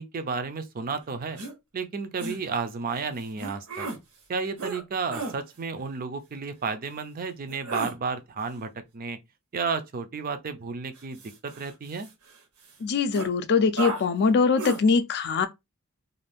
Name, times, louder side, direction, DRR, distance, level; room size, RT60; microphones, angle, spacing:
voice 1, 0.0-1.4 1.7-3.9 4.3-9.2 9.5-12.1, right 5 dB, 40° right, 0.5 m, -32 dB
sound 1, 1.4-1.5 2.2-2.4 3.4-4.0 4.6-4.8 5.1-5.4 7.5-7.9 11.0-12.3 12.7-12.8 13.1-13.3 13.8-14.0 14.6-14.8, right 3 dB, 80° right, 0.9 m, -34 dB
voice 2, 12.8-15.5, left 5 dB, 50° left, 0.4 m, -22 dB
2.6 x 2.3 x 3.4 m
head